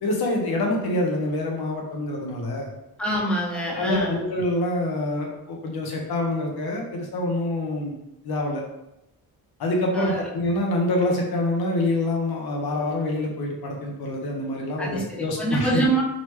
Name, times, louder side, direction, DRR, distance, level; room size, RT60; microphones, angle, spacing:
voice 1, 0.0-2.7 3.7-7.9 8.2-8.6 9.6-15.8, left 1 dB, 80° left, 0 dB, 1.0 m, -26 dB
voice 2, 3.0-4.2 9.9-10.2 14.8-16.0, right 2 dB, 5° left, -4 dB, 0.8 m, -25 dB
3.9 x 3.2 x 3.1 m, 0.87 s
wide cardioid pair, 140°, 37 cm